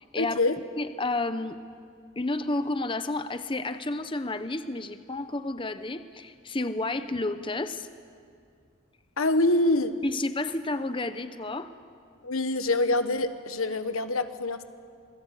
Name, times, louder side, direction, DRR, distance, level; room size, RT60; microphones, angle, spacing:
voice 1, 0.2-0.6 9.2-9.9 12.2-14.6, left 2 dB, 85° left, 10 dB, 1.3 m, -25 dB
voice 2, 0.7-1.6 2.2-7.9 10.0-11.7, left 2 dB, 25° left, 11 dB, 0.8 m, -31 dB
26.5 x 20.5 x 8.3 m, 2.2 s
head